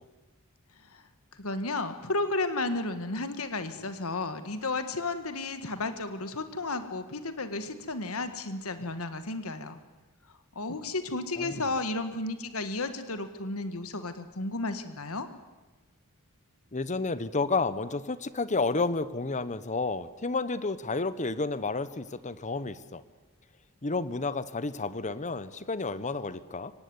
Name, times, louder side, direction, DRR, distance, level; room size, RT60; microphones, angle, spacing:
voice 1, 0.8-9.8 10.3-15.3, left 2 dB, 70° left, 9 dB, 1.7 m, -33 dB
voice 2, 16.7-23.0 23.8-26.7, left 3 dB, 35° left, 15 dB, 1.1 m, -31 dB
24.5 x 18.5 x 9.6 m, 1.2 s
head